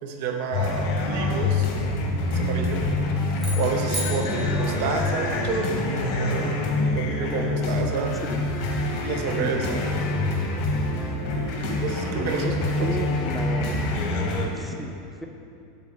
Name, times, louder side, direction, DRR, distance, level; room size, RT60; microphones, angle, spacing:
voice 1, 0.0-1.6 2.3-2.9 3.6-6.6 6.8-8.1 9.0-9.9 11.3-13.1, right 5 dB, 60° right, 3 dB, 0.7 m, -29 dB
sound 1, 0.5-14.5, left 2 dB, 55° left, 0.9 m, -26 dB
sound 2, 3.3-5.7, right 1 dB, 25° right, 1.2 m, -36 dB
voice 2, 3.5-4.4 8.3-8.4 9.4-9.8 12.1-13.7 14.5-15.3, equal, ahead, 2 dB, 0.5 m, -34 dB
7.2 x 4.2 x 3.8 m, 2.6 s
hypercardioid pair, 100°, 0 cm